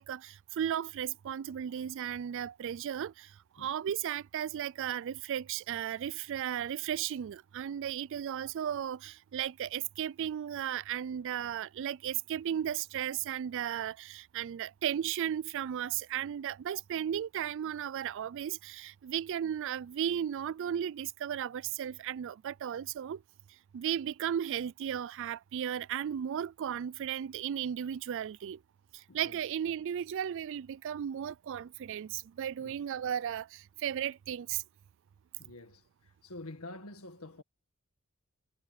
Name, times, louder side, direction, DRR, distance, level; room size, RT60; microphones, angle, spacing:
voice 1, 0.0-23.2 23.7-28.6 28.9-34.6, right 9 dB, 60° right, 0.3 m, -35 dB
voice 2, 29.1-29.4 32.6-32.7 35.4-37.4, left 2 dB, 80° left, 1.9 m, -47 dB
head